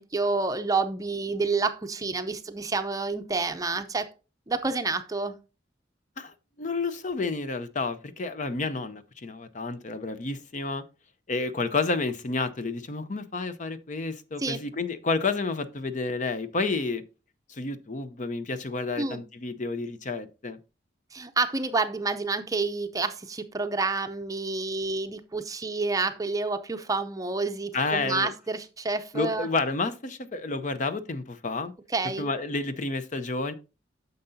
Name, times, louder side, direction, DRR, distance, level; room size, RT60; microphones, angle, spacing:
voice 1, 0.0-4.1 4.5-5.3 14.4-14.6 19.0-19.2 21.1-29.5 31.9-32.3, right 3 dB, 20° right, 0.6 m, -29 dB
voice 2, 6.2-10.8 11.3-17.0 17.5-20.6 27.7-28.3 29.1-31.7 32.2-33.5, left 3 dB, 40° left, 0.6 m, -30 dB
9.3 x 6.7 x 2.7 m
head